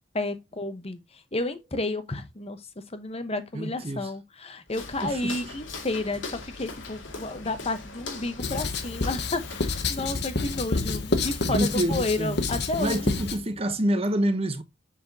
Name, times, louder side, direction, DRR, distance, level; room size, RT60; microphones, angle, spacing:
voice 1, 0.1-1.0 1.3-2.6 2.9-13.1, left 2 dB, 30° left, 0.9 m, -31 dB
voice 2, 3.5-4.1 5.0-5.4 11.4-12.4 12.8-14.6, right 1 dB, 30° right, 0.8 m, -27 dB
Walk footsteps, 4.7-10.0, left 3 dB, 80° left, 2.1 m, -40 dB
Writing, 8.4-13.4, left 3 dB, 60° left, 1.2 m, -29 dB
7.4 x 5.8 x 2.7 m
head